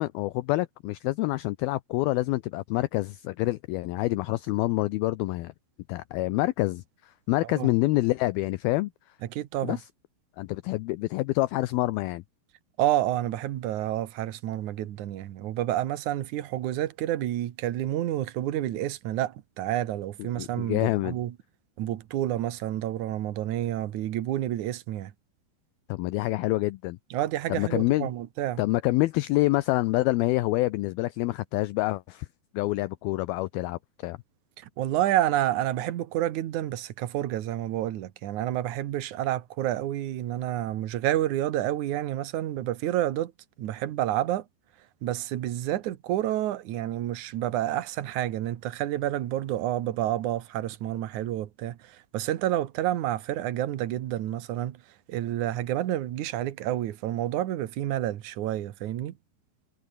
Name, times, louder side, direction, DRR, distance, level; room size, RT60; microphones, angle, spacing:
voice 1, 0.0-5.5 5.9-8.9 9.6-9.8 10.4-12.2 20.4-21.2 25.9-27.0 27.5-28.1 28.6-32.3 32.5-34.2, left 19 dB, 85° left, 2.1 m, -27 dB
voice 2, 9.2-9.8 12.8-21.4 21.8-25.1 27.1-28.6 34.6-43.3 43.6-44.5 45.0-54.8 55.1-59.1, right 13 dB, 65° right, 1.9 m, -29 dB
omnidirectional pair, 5.1 m